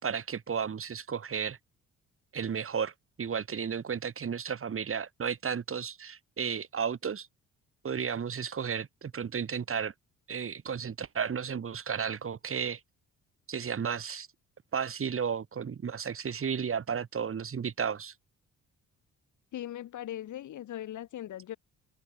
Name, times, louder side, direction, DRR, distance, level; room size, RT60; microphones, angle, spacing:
voice 1, 0.0-1.6 2.3-7.3 7.8-9.9 10.3-12.8 13.5-14.3 14.7-18.1, right 7 dB, 45° right, 4.6 m, -33 dB
voice 2, 19.5-21.6, left 12 dB, 75° left, 7.1 m, -39 dB
cardioid pair, 90°, 30 cm